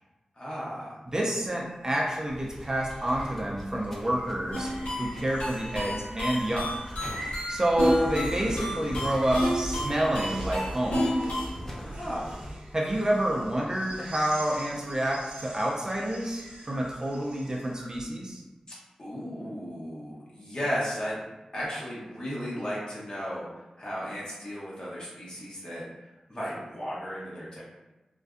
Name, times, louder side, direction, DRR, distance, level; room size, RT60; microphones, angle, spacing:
voice 1, 0.4-0.9 11.7-12.2 19.0-21.2 21.5-23.4 23.8-25.8 26.3-27.6, equal, 40° left, -7 dB, 1.0 m, -35 dB
voice 2, 1.1-4.7 5.0-6.7 7.5-11.0 12.7-18.4, right 1 dB, 30° right, -2 dB, 0.4 m, -28 dB
sound 1, 1.1-18.0, right 1 dB, 85° right, 0.5 m, -43 dB
sound 2, 2.3-12.5, equal, 15° left, 0.6 m, -43 dB
sound 3, 4.5-11.5, equal, 85° left, 0.6 m, -31 dB
2.5 x 2.2 x 2.4 m, 1.0 s
wide cardioid pair, 60°, 2 cm